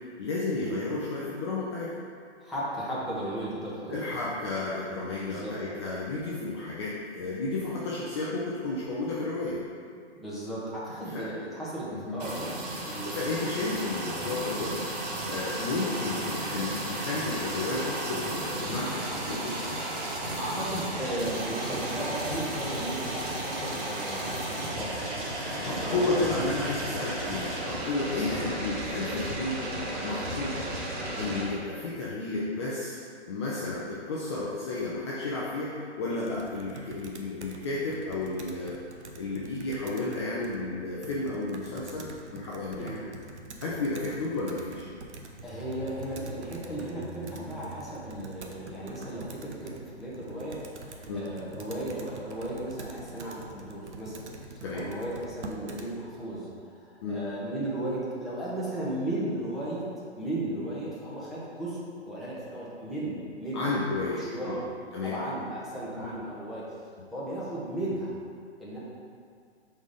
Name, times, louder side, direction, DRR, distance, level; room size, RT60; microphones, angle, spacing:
voice 1, 0.0-2.0 3.9-9.6 11.1-11.3 12.0-12.2 13.0-14.8 15.3-19.6 25.4-29.6 30.0-30.7 31.2-33.0 33.3-38.8 39.2-42.1 42.3-43.1 43.6-44.9 51.1-51.3 54.6-54.9 57.0-57.3 63.5-64.6 64.9-65.2 66.0-66.1, left 2 dB, 25° left, -6 dB, 0.5 m, -32 dB
voice 2, 2.4-4.0 5.3-5.6 10.1-12.5 12.8-13.1 20.4-25.0 25.6-26.3 26.9-27.0 28.3-28.4 42.8-43.0 45.4-54.2 54.5-59.9 60.2-61.8 62.0-63.6 64.2-64.6 65.0-66.6 67.1-68.1 68.6-68.8, right 1 dB, ahead, -10 dB, 0.8 m, -35 dB
sound 1, 12.2-31.4, right 1 dB, 35° right, 1.2 m, -34 dB
Computer keyboard, 36.2-55.9, right 2 dB, 75° right, 0.8 m, -45 dB
5.1 x 4.2 x 5.0 m, 2.1 s
hypercardioid pair, 145°, 34 cm